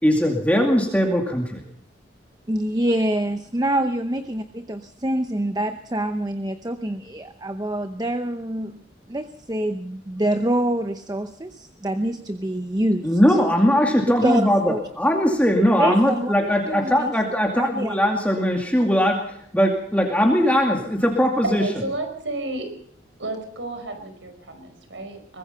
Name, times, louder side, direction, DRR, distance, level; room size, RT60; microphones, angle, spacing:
voice 1, 0.0-1.6 13.0-21.6, equal, 10° left, 1 dB, 2.4 m, -20 dB
voice 2, 2.5-8.8 9.1-13.4 14.2-14.8 15.8-16.3 16.7-17.1 17.6-17.9, right 1 dB, 20° right, 9 dB, 0.8 m, -26 dB
voice 3, 21.4-22.7 23.2-25.4, right 2 dB, 80° right, 7 dB, 5.1 m, -31 dB
23.0 x 20.0 x 5.6 m, 0.67 s
head